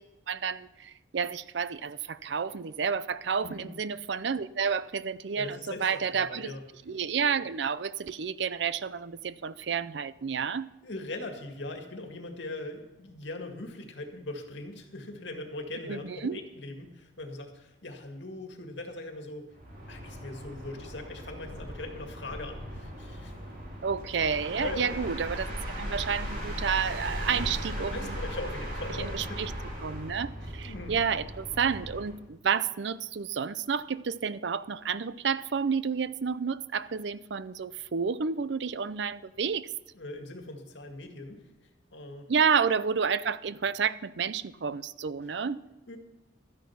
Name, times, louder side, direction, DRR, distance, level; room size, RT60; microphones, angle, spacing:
voice 1, 0.3-6.5 6.9-10.7 15.9-16.4 23.8-28.2 29.0-29.5 29.8-39.7 42.3-45.6, right 6 dB, 70° right, 0.5 m, -30 dB
voice 2, 3.4-3.7 5.4-6.6 10.8-19.5 19.9-23.3 24.6-24.9 27.8-29.5 30.7-31.0 39.9-41.4 41.9-42.3 45.9-46.0, left 2 dB, 70° left, 2.0 m, -40 dB
sound 1, 19.5-32.2, equal, 45° right, 3.0 m, -38 dB
13.0 x 10.5 x 5.8 m
head